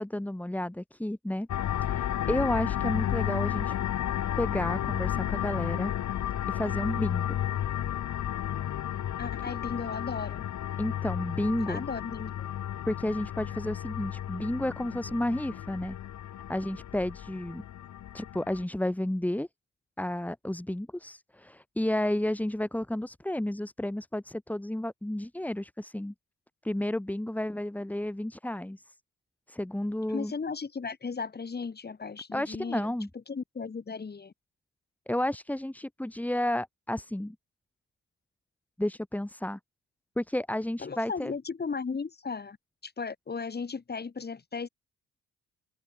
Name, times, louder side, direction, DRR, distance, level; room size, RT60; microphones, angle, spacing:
voice 1, 0.0-1.5 1.8-3.7 4.4-5.9 6.5-7.4 10.8-11.8 12.9-16.0 16.5-17.7 18.1-19.5 20.0-26.1 26.6-28.9 29.5-30.3 32.3-33.1 35.1-37.4 38.8-39.6 40.2-41.3, left 1 dB, 5° left, 2.0 m, -31 dB
sound 1, 1.5-18.6, left 11 dB, 70° left, 4.6 m, -32 dB
voice 2, 9.2-10.4 11.7-12.5 30.1-32.9 33.3-34.3 40.8-42.6 42.8-44.7, left 5 dB, 35° left, 4.6 m, -36 dB
open air
cardioid pair, 90°, 30 cm